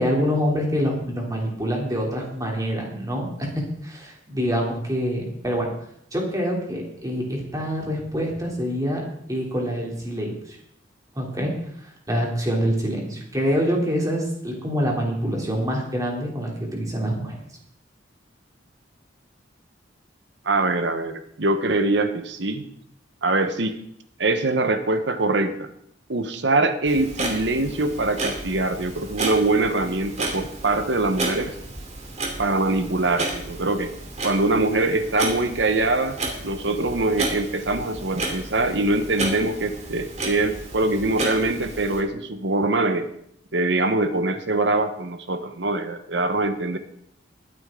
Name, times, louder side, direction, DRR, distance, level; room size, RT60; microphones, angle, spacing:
voice 1, 0.0-3.5 3.8-5.7 6.1-10.6 11.1-11.5 11.8-17.4, equal, 20° right, -1 dB, 3.2 m, -26 dB
voice 2, 20.4-22.6 23.2-23.8 24.2-25.7 26.1-31.5 32.4-33.9 34.2-36.2 36.4-43.1 43.5-46.8, right 2 dB, 70° right, 9 dB, 1.2 m, -23 dB
Clock, 26.9-42.0, right 2 dB, 40° right, 2.6 m, -32 dB
20.5 x 9.1 x 3.8 m, 0.71 s
head